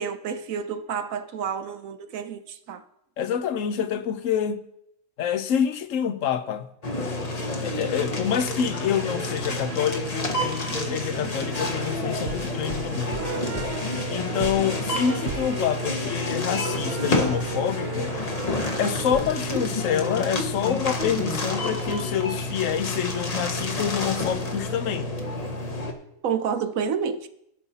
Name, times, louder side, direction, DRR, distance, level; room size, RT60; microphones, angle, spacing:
voice 1, 0.0-2.8 26.2-27.3, right 7 dB, 85° right, 1.2 m, -29 dB
voice 2, 3.2-4.6 5.2-6.7 7.6-13.2 14.1-18.1 18.8-25.1, left 8 dB, 75° left, 1.1 m, -27 dB
sound 1, 6.8-25.9, left 2 dB, 30° left, 1.1 m, -29 dB
sound 2, 8.9-19.6, right 7 dB, 60° right, 0.7 m, -38 dB
16.5 x 5.6 x 4.1 m
omnidirectional pair, 1.4 m